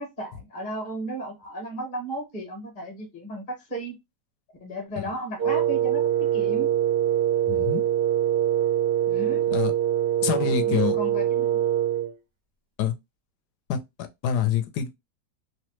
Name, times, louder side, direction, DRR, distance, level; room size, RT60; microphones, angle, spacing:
voice 1, 0.0-3.9 4.6-6.7 9.1-9.5 10.3-11.6, right 1 dB, 35° left, 0.9 m, -34 dB
Wind instrument woodwind instrument, 5.4-12.1, right 11 dB, 75° right, 0.5 m, -23 dB
voice 2, 7.5-7.8 9.5-9.7 10.2-11.0 12.8-12.9 13.7-13.8 14.2-14.9, left 9 dB, 75° left, 1.1 m, -26 dB
3.1 x 2.0 x 3.0 m
omnidirectional pair, 1.9 m